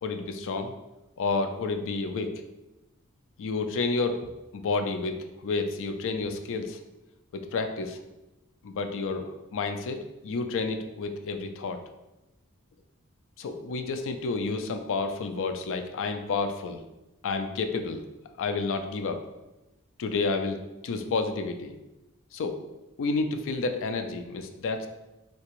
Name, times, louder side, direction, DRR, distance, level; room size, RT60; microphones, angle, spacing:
voice 1, 0.0-0.7 1.2-2.3 3.4-4.2 4.5-5.2 5.4-6.8 7.3-8.0 8.6-11.8 13.4-16.8 17.2-18.0 18.4-19.2 20.0-20.6 20.8-21.7 22.3-22.7 23.0-24.9, left 3 dB, 60° left, 7 dB, 0.4 m, -30 dB
3.4 x 2.8 x 3.0 m, 1.0 s
head